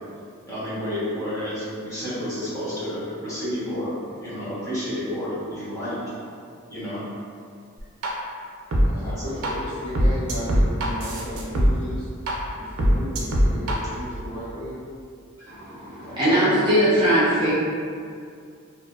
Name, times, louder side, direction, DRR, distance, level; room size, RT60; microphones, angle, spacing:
voice 1, 0.5-3.9 4.2-6.2 6.7-7.0 8.9-9.3 15.4-15.5 16.0-16.5, equal, 15° left, -12 dB, 0.8 m, -31 dB
sound 1, 8.0-8.1 8.7-8.8 9.4-9.5 9.9-11.7 12.3-12.4 12.8-13.7, equal, 85° right, 0.4 m, -20 dB
voice 2, 8.7-12.1 12.6-14.8, equal, 30° left, -11 dB, 0.5 m, -34 dB
voice 3, 15.5-17.5, equal, 20° right, -11 dB, 0.5 m, -20 dB
2.5 x 2.1 x 2.3 m, 2.3 s
head